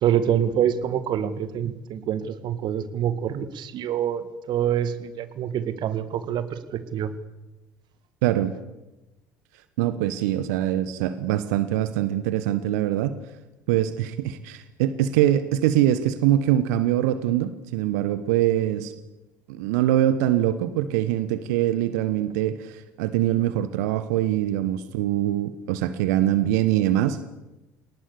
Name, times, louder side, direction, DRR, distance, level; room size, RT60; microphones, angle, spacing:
voice 1, 0.0-7.1, right 9 dB, 50° right, 13 dB, 2.1 m, -26 dB
voice 2, 8.2-8.5 9.8-13.2 13.7-18.9 19.5-27.3, right 12 dB, 65° right, 12 dB, 1.3 m, -23 dB
29.5 x 19.0 x 7.0 m, 1.0 s
figure-of-eight pair, 60°, 10 cm